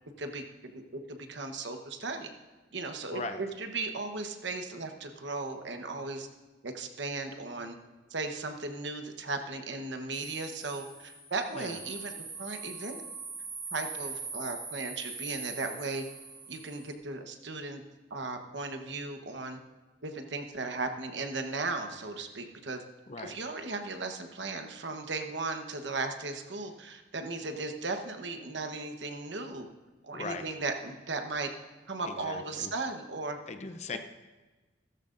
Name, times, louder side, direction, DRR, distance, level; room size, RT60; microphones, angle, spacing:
voice 1, 0.2-0.7 1.1-2.3 2.7-6.3 6.6-7.8 8.1-12.1 12.4-13.0 13.7-16.0 16.5-17.8 18.1-19.6 20.0-22.8 23.2-29.7 30.0-31.5 31.9-33.4, right 3 dB, 80° right, 5 dB, 1.1 m, -36 dB
voice 2, 3.1-3.4 11.5-11.8 23.1-23.4 30.1-30.5 32.0-32.7 33.5-34.0, left 3 dB, 35° left, 8 dB, 0.6 m, -39 dB
sound 1, 10.1-16.9, right 4 dB, 10° right, 1.9 m, -42 dB
15.5 x 13.5 x 2.6 m, 1.2 s
head